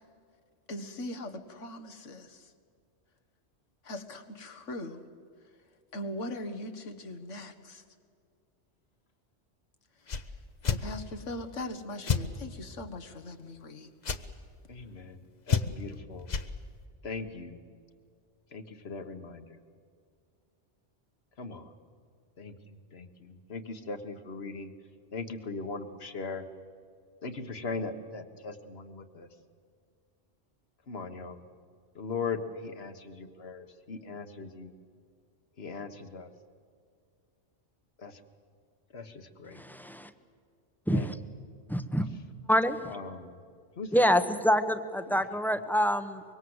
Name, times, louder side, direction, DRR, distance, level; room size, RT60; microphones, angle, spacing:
voice 1, 0.7-2.5 3.8-5.0 5.9-7.8 10.7-13.9, left 1 dB, 85° left, 7 dB, 1.9 m, -40 dB
sound 1, 10.1-10.2 10.6-10.8 12.1-12.2 14.0-14.2 15.5-15.9 16.3-16.5, left 6 dB, 40° left, 0.9 m, -28 dB
voice 2, 14.7-16.3 17.0-17.6 18.5-19.6 21.4-21.7 22.4-24.7 25.1-26.4 27.2-29.3 30.9-31.4 31.9-34.7 35.6-36.3 38.0-38.2 38.9-39.6 40.9-41.2 42.8-43.4 43.8-44.1 45.1-45.2, left 4 dB, 60° left, 9 dB, 1.6 m, -39 dB
voice 3, 39.6-40.1 40.9-41.0 41.7-42.0 42.5-42.8 43.9-46.2, equal, ahead, 10 dB, 0.9 m, -26 dB
24.5 x 23.5 x 8.0 m, 2.2 s
omnidirectional pair, 1.2 m